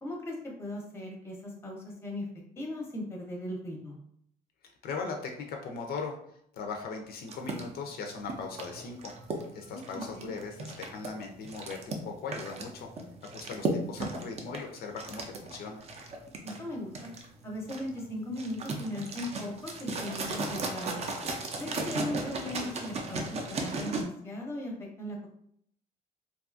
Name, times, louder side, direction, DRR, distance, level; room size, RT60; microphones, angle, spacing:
voice 1, 0.0-2.3 2.6-4.0 9.7-10.3 16.4-17.1 17.4-21.0 21.6-24.7 25.0-25.3, left 1 dB, 15° left, -1 dB, 0.6 m, -38 dB
voice 2, 4.6-6.1 6.5-12.9 13.3-15.8, left 4 dB, 65° left, 3 dB, 0.4 m, -39 dB
sound 1, 7.3-24.0, right 3 dB, 40° right, 0.4 m, -36 dB
2.6 x 2.3 x 2.4 m, 0.70 s
cardioid pair, 145°, 17 cm